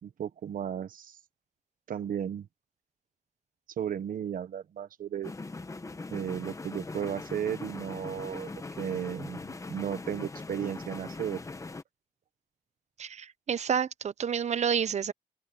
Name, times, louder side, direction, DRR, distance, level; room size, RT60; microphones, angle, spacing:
voice 1, 0.0-1.2 1.9-2.5 3.8-5.3 6.1-11.4, right 9 dB, 75° right, 1.1 m, -34 dB
sound 1, 5.2-11.8, left 3 dB, 20° left, 1.1 m, -41 dB
voice 2, 13.0-15.1, right 7 dB, 55° right, 0.7 m, -29 dB
open air
wide cardioid pair, 125°, 14 cm